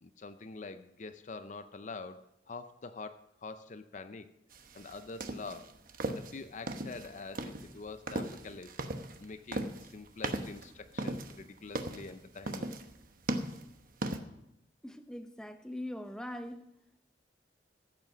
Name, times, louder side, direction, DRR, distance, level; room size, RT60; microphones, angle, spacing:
voice 1, 0.0-4.3 4.7-5.8 6.1-8.7 9.2-12.7, left 3 dB, 40° left, 0.6 m, -45 dB
sound 1, 4.5-14.2, right 2 dB, 50° right, 1.0 m, -38 dB
voice 2, 14.8-16.7, left 1 dB, 5° left, 0.7 m, -41 dB
14.0 x 8.2 x 6.0 m
head